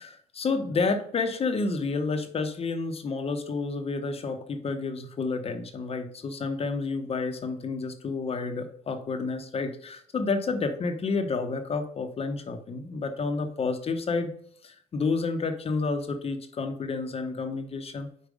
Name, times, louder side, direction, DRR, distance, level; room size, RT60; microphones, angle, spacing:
voice 1, 0.0-14.3 14.6-18.1, left 4 dB, 35° left, 6 dB, 0.8 m, -30 dB
5.3 x 4.4 x 4.8 m, 0.64 s
cardioid pair, 110°, 17 cm